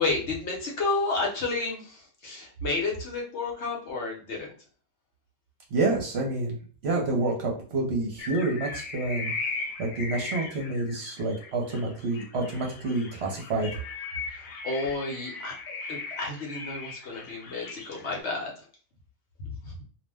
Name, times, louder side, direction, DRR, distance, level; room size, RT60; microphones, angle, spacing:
voice 1, 0.0-4.5 14.3-18.5 19.4-19.7, left 3 dB, 60° left, -1 dB, 1.0 m, -31 dB
voice 2, 5.7-6.6 6.8-9.3 9.8-13.7, right 2 dB, 60° right, 0 dB, 0.9 m, -28 dB
sound 1, 8.2-18.2, left 4 dB, 85° left, 1.0 m, -38 dB
2.4 x 2.0 x 3.3 m, 0.42 s
omnidirectional pair, 1.4 m